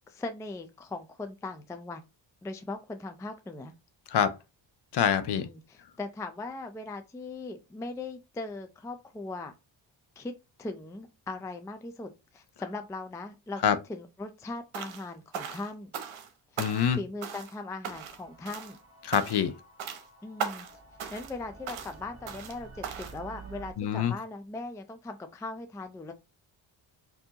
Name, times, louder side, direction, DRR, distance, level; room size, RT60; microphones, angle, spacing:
voice 1, 0.1-2.0 2.4-3.7 5.3-9.5 10.2-10.3 10.6-13.6 13.9-15.9 16.5-18.8 20.2-20.7 21.1-26.1, left 3 dB, 5° left, 0.3 m, -39 dB
voice 2, 4.9-5.5 13.6-13.8 16.6-17.0 19.0-19.5 23.8-24.1, left 8 dB, 60° left, 0.6 m, -25 dB
sound 1, 14.7-15.1 15.3-16.3 16.6-17.0 17.2-17.6 17.8-18.2 18.5-18.8 19.1-19.5 19.8-20.0 20.4-20.7 21.0-21.4 21.7-21.9 22.3-22.6 22.8-23.2, right 7 dB, 75° right, 0.9 m, -38 dB
sound 2, 17.9-23.7, right 4 dB, 30° right, 1.4 m, -50 dB
4.4 x 2.7 x 2.8 m
cardioid pair, 105°, 47 cm